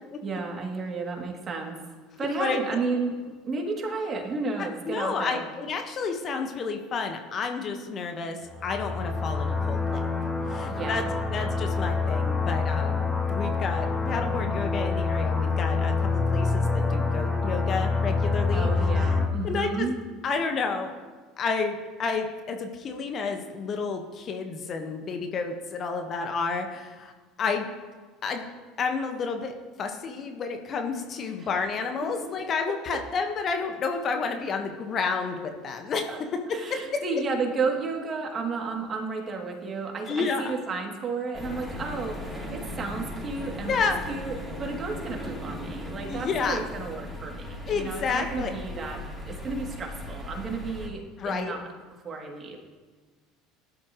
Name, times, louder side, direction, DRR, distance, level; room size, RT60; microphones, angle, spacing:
voice 1, 0.2-1.7 2.2-3.2 3.4-5.4 10.7-11.1 18.5-19.9 31.4-31.5 32.0-32.1 36.1-36.2 36.5-51.7 52.0-52.6, right 4 dB, 35° right, 1 dB, 3.0 m, -32 dB
voice 2, 2.2-2.6 4.6-10.0 10.5-18.7 19.0-19.1 19.4-19.9 20.2-20.9 21.4-27.1 27.4-27.7 28.2-28.4 28.8-29.5 29.8-36.0 36.9-37.2 40.1-40.5 43.7-44.0 46.1-46.6 47.7-48.5 51.2-51.6, left 5 dB, 40° left, 5 dB, 1.6 m, -30 dB
sound 1, 8.4-19.3, left 4 dB, 10° left, 1.9 m, -26 dB
sound 2, 41.3-50.9, left 1 dB, 5° right, 4.3 m, -38 dB
18.5 x 11.5 x 3.3 m, 1.4 s
figure-of-eight pair, 65°, 0 cm